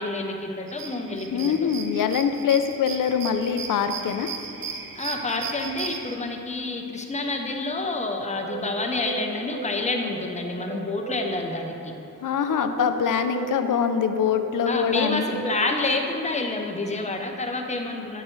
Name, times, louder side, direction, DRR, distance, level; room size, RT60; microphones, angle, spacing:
voice 1, 0.0-1.7 4.9-11.9 14.7-18.2, left 2 dB, 20° left, 3 dB, 0.6 m, -28 dB
sound 1, 0.7-6.2, right 6 dB, 80° right, 0.6 m, -36 dB
voice 2, 1.3-4.3 12.2-15.4, left 7 dB, 70° left, 9 dB, 0.5 m, -24 dB
sound 2, 8.0-16.4, right 4 dB, 55° right, 1.0 m, -37 dB
9.0 x 7.4 x 3.1 m, 2.7 s
wide cardioid pair, 155°, 33 cm